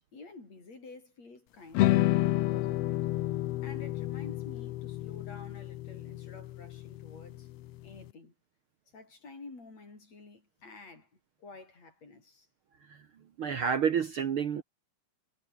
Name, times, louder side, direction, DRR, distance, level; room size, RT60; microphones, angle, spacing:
voice 1, 0.1-3.0 3.6-7.5 7.8-8.3 8.9-12.5, left 3 dB, 60° left, 7.8 m, -50 dB
sound 1, 1.7-8.0, left 16 dB, 80° left, 1.4 m, -30 dB
voice 2, 13.4-14.6, right 7 dB, 55° right, 1.8 m, -29 dB
omnidirectional pair, 3.5 m